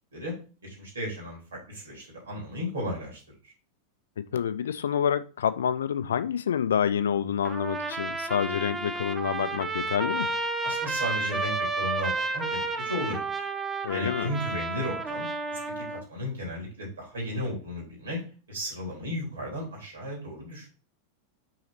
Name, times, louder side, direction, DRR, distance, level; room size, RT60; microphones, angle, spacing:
voice 1, 0.6-3.5 10.6-13.4 13.9-18.2 18.5-20.7, equal, 65° right, 3.5 m, -35 dB
voice 2, 4.3-10.3 13.8-14.3, left 8 dB, 65° left, 0.5 m, -27 dB
Trumpet, 7.4-16.0, right 3 dB, 15° right, 0.7 m, -31 dB
5.8 x 4.9 x 4.2 m
figure-of-eight pair, 90°, 0 cm